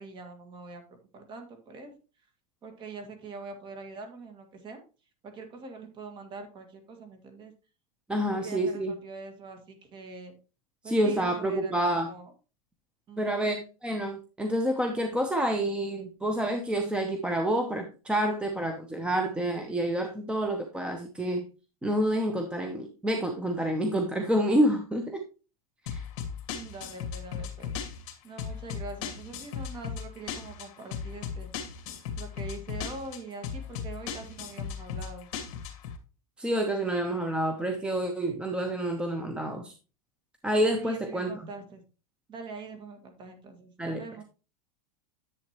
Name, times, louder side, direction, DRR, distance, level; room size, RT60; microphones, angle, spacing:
voice 1, 0.0-2.0 2.6-4.8 5.2-7.5 8.3-10.4 10.8-12.3 13.1-13.5 26.5-27.7 28.2-31.5 32.2-35.3 40.8-41.8 42.3-44.2, right 3 dB, 25° right, 6 dB, 2.0 m, -43 dB
voice 2, 8.1-8.9 10.8-12.1 13.2-21.5 21.8-25.2 25.9-26.0 36.4-39.7 40.4-41.5 43.8-44.0, right 1 dB, 5° right, 5 dB, 0.8 m, -28 dB
sound 1, 25.9-36.0, left 7 dB, 55° left, 2.2 m, -37 dB
10.5 x 7.7 x 3.1 m, 0.33 s
supercardioid pair, 150°, 19 cm